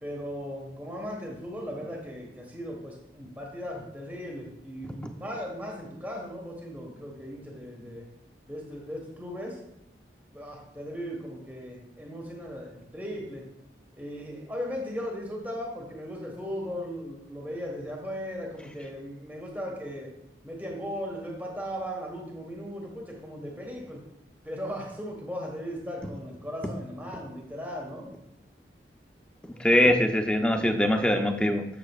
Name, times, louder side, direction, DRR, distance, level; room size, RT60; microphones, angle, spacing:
voice 1, 0.0-8.1 8.5-9.6 10.3-13.4 14.0-20.1 20.4-24.0 24.4-28.1, equal, 10° right, -1 dB, 1.5 m, -37 dB
voice 2, 29.6-31.7, left 1 dB, 5° left, 5 dB, 0.6 m, -22 dB
11.5 x 6.8 x 2.5 m, 0.81 s
head